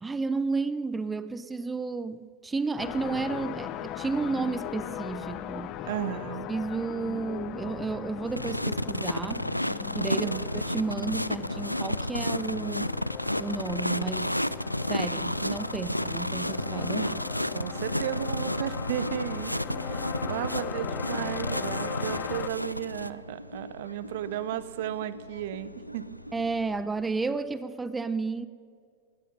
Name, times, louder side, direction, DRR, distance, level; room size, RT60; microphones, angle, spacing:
voice 1, 0.0-5.7 6.5-9.5 9.9-12.9 13.4-14.3 14.9-17.2 26.3-28.5, right 4 dB, 10° right, 0.6 m, -32 dB
sound 1, 2.8-22.5, left 11 dB, 35° left, 0.7 m, -39 dB
voice 2, 5.8-6.5 10.2-10.5 17.5-19.5 19.8-26.2, right 12 dB, 55° right, 0.6 m, -34 dB
sound 2, 8.3-23.1, equal, 90° left, 0.3 m, -31 dB
sound 3, 17.8-26.8, equal, 90° right, 0.7 m, -45 dB
19.0 x 13.5 x 5.4 m
figure-of-eight pair, 90°, 0 cm